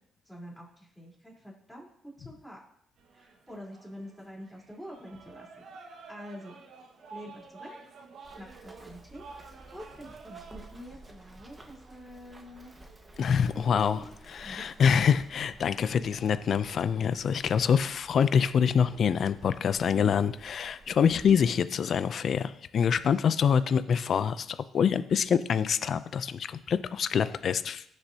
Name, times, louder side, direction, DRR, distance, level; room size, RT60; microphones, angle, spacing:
voice 1, 0.3-1.9 2.2-2.6 3.1-5.5 6.1-6.6 7.1-7.9 8.2-12.8 13.4-14.6, equal, ahead, -3 dB, 3.9 m, -47 dB
sound 1, 3.0-21.8, right 4 dB, 70° right, 1.6 m, -53 dB
Run, 8.2-21.3, right 2 dB, 20° right, 1.5 m, -53 dB
voice 2, 13.2-27.8, left 7 dB, 55° left, 13 dB, 0.5 m, -26 dB
16.0 x 6.5 x 2.9 m, 0.70 s
cardioid pair, 90°, 0 cm